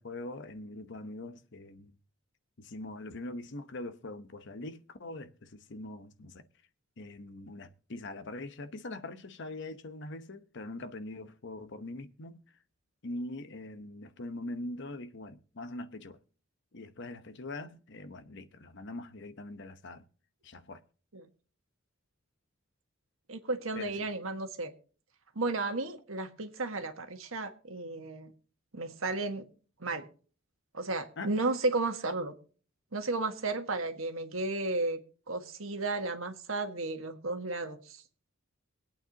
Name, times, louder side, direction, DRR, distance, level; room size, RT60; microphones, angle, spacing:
voice 1, 0.0-1.9 2.6-6.4 7.0-12.4 13.0-16.2 16.7-20.0 20.4-20.8 23.7-24.1 31.2-31.3, left 2 dB, 60° left, 0.9 m, -42 dB
voice 2, 23.3-24.7 25.3-28.3 28.7-29.4 29.8-30.1 30.7-32.3 32.9-35.0 35.3-38.0, right 3 dB, 85° right, 1.7 m, -33 dB
23.5 x 8.8 x 2.9 m
head